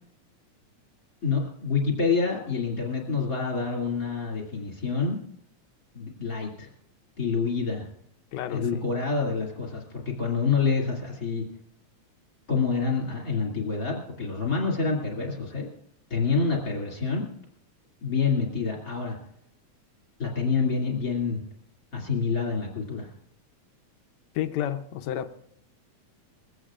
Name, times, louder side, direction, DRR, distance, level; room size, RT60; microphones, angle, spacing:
voice 1, 1.2-5.2 5.9-6.7 7.2-7.9 8.5-11.4 12.5-15.7 16.1-17.2 18.0-19.2 20.2-21.4 21.9-23.1, left 5 dB, 30° left, 1 dB, 2.8 m, -27 dB
voice 2, 8.3-8.9 24.4-25.3, left 11 dB, 75° left, 8 dB, 1.9 m, -31 dB
22.0 x 16.5 x 2.5 m, 0.72 s
omnidirectional pair, 3.4 m